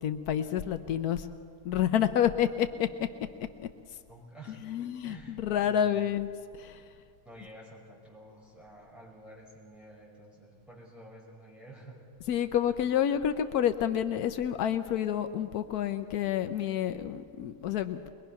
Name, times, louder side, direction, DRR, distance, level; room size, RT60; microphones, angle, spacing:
voice 1, 0.0-1.3 1.6-2.9 3.6-3.7 4.7-6.3 6.6-6.8 12.3-18.1, left 10 dB, 85° left, 10 dB, 1.2 m, -29 dB
voice 2, 4.1-4.7 5.0-6.1 7.2-12.0, right 1 dB, ahead, -5 dB, 5.5 m, -50 dB
22.0 x 21.5 x 5.8 m, 2.2 s
omnidirectional pair, 1.6 m